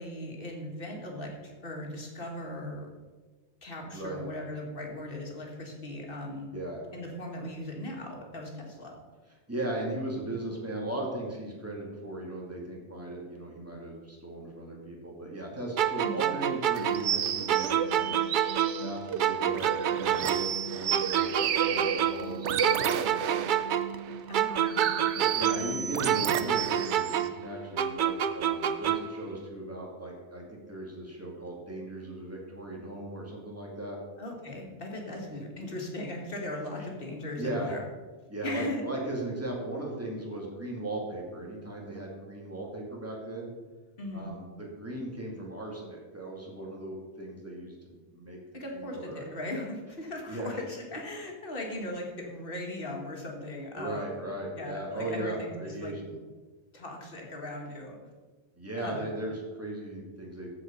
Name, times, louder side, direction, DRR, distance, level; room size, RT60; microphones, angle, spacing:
voice 1, 0.0-2.9 3.6-6.5 6.9-9.0 16.0-16.3 24.3-24.9 34.2-37.8 38.4-38.8 44.0-44.3 48.5-54.0 54.5-56.0 56.7-58.0 58.8-59.2, left 1 dB, 50° left, 0 dB, 2.0 m, -38 dB
voice 2, 3.8-4.2 6.5-6.8 9.5-18.1 18.8-21.3 21.6-23.3 25.1-34.0 35.1-35.2 36.8-36.9 37.4-37.7 38.3-43.5 44.1-48.4 48.7-49.3 50.3-50.6 53.8-56.0 58.6-60.5, right 1 dB, 10° right, -2 dB, 2.2 m, -37 dB
sound 1, 15.8-18.9 19.2-22.4 22.6-25.8 26.1-29.2, right 10 dB, 60° right, 0.5 m, -28 dB
sound 2, 16.7-27.3, right 8 dB, 80° right, 0.9 m, -32 dB
15.0 x 5.0 x 5.2 m, 1.3 s
omnidirectional pair, 1.2 m